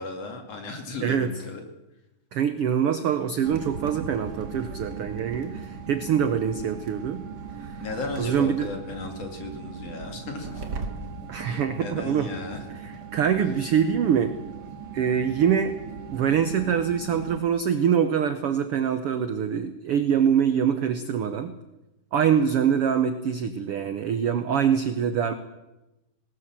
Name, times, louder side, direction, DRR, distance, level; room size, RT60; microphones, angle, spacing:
voice 1, 0.0-1.6 7.8-10.6 11.4-12.6, left 3 dB, 50° left, 4 dB, 3.4 m, -35 dB
voice 2, 1.0-1.4 2.3-7.3 7.6-7.8 8.2-8.7 11.3-12.3 12.7-14.3 14.9-15.7 16.1-21.5 22.1-25.3, right 8 dB, 70° right, 9 dB, 1.3 m, -24 dB
sound 1, 3.4-17.4, right 5 dB, 35° right, 2.2 m, -39 dB
19.5 x 19.0 x 7.5 m, 0.99 s
omnidirectional pair, 3.8 m